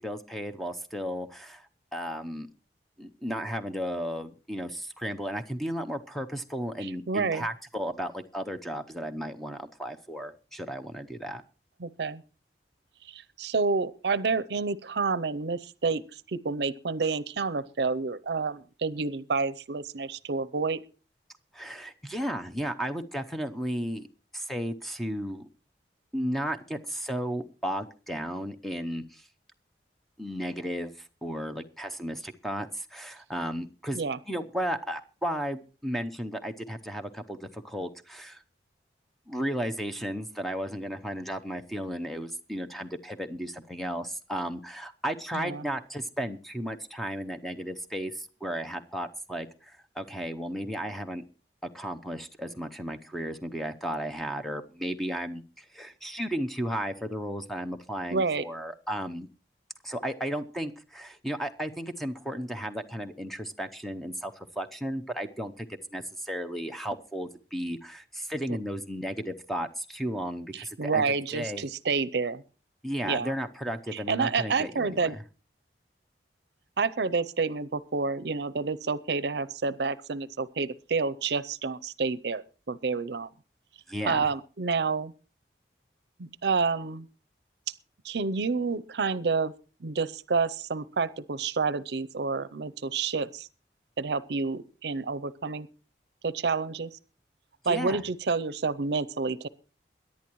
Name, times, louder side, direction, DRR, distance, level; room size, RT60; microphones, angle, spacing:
voice 1, 0.0-2.5 3.0-11.4 21.5-24.0 24.3-25.5 26.1-29.3 30.2-38.4 39.3-51.2 51.6-59.3 59.8-71.0 71.3-71.7 72.8-75.2 83.9-84.3 97.6-98.0, equal, ahead, 7 dB, 0.7 m, -34 dB
voice 2, 6.8-7.4 11.8-12.2 13.1-16.0 16.3-20.8 33.9-34.2 45.3-45.6 58.1-58.4 70.5-72.4 73.0-73.3 73.9-75.1 76.8-83.3 84.1-85.1 86.2-87.1 88.0-89.5 89.8-93.5 94.0-95.7 96.2-96.9 97.7-99.5, right 4 dB, 70° right, 17 dB, 0.6 m, -29 dB
22.5 x 10.5 x 3.0 m, 0.36 s
head